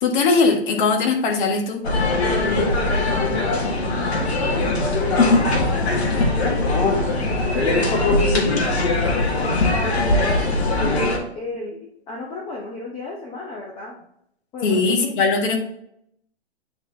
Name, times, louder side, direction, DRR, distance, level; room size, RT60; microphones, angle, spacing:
voice 1, 0.0-1.8 14.6-15.6, left 4 dB, 50° left, 2 dB, 1.7 m, -19 dB
sound 1, 1.8-11.2, left 2 dB, 75° left, 1.8 m, -20 dB
voice 2, 2.2-3.5 4.3-4.7 5.1-5.8 6.2-8.2 9.1-14.0 14.5-14.8 15.2-15.3, left 2 dB, 15° left, -1 dB, 0.9 m, -34 dB
9.0 x 3.9 x 2.9 m, 0.74 s
hypercardioid pair, 140°, 33 cm